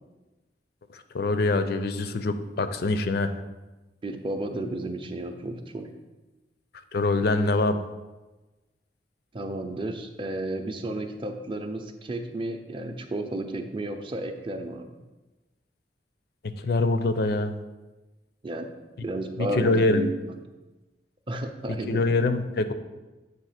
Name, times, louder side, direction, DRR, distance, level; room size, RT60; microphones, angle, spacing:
voice 1, 0.9-3.3 6.9-7.8 16.6-17.5 19.4-20.1 21.9-22.7, left 2 dB, 60° left, 10 dB, 0.5 m, -24 dB
voice 2, 4.0-5.9 9.3-14.9 18.4-18.7 19.0-20.1 21.3-22.0, right 1 dB, 30° right, 6 dB, 0.5 m, -32 dB
7.5 x 2.8 x 5.7 m, 1.1 s
head